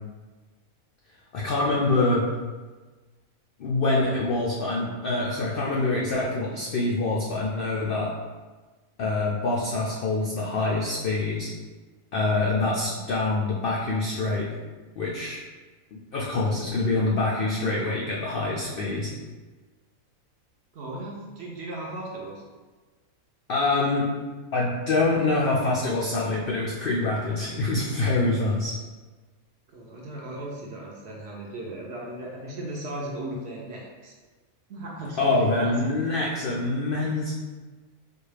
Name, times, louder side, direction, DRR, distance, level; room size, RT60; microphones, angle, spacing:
voice 1, 1.3-2.2 3.6-8.1 9.0-11.5 12.1-14.5 14.9-15.4 15.9-19.1 23.5-24.1 24.5-28.8 35.2-37.3, left 2 dB, 80° left, -4 dB, 0.5 m, -25 dB
voice 2, 20.7-22.4 29.7-34.1 34.7-36.0, right 1 dB, 60° right, -3 dB, 0.7 m, -36 dB
4.2 x 2.3 x 3.2 m, 1.3 s
omnidirectional pair, 1.5 m